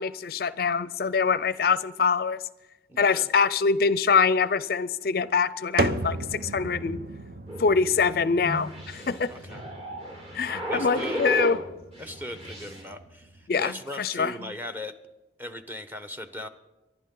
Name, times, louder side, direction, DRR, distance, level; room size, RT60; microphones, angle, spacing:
voice 1, 0.0-2.4 3.0-7.0 7.6-9.3 10.3-11.6 13.5-13.7 14.0-14.3, left 5 dB, 55° left, 0.5 m, -24 dB
voice 2, 2.9-3.3 9.3-9.6 10.6-11.3 12.0-14.9 15.4-16.5, left 1 dB, 10° right, 1.0 m, -38 dB
sound 1, 5.8-13.5, right 2 dB, 55° right, 0.7 m, -35 dB
sound 2, 7.5-11.6 11.9-12.8, equal, 35° right, 4.3 m, -34 dB
24.0 x 11.5 x 3.9 m
head